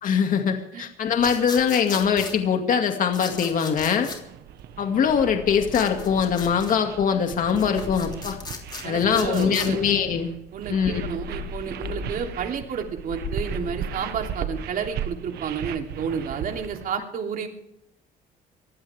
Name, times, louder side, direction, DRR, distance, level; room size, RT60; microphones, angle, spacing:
voice 1, 0.0-4.1 4.8-8.4 8.8-10.3 10.7-11.0, left 7 dB, 50° left, 4 dB, 2.3 m, -22 dB
sound 1, 1.2-2.4 3.1-4.2 5.7-6.8 7.4-9.7, left 4 dB, 25° left, 3.5 m, -37 dB
sound 2, 4.0-16.9, right 9 dB, 70° right, 1.3 m, -37 dB
sound 3, 4.9-6.8 7.7-9.2 10.6-12.7 13.0-14.7, left 6 dB, 90° left, 1.5 m, -38 dB
voice 2, 8.8-9.8 10.5-17.5, right 7 dB, 55° right, 2 dB, 3.2 m, -31 dB
23.0 x 16.0 x 3.5 m, 0.82 s
cardioid pair, 110°, 17 cm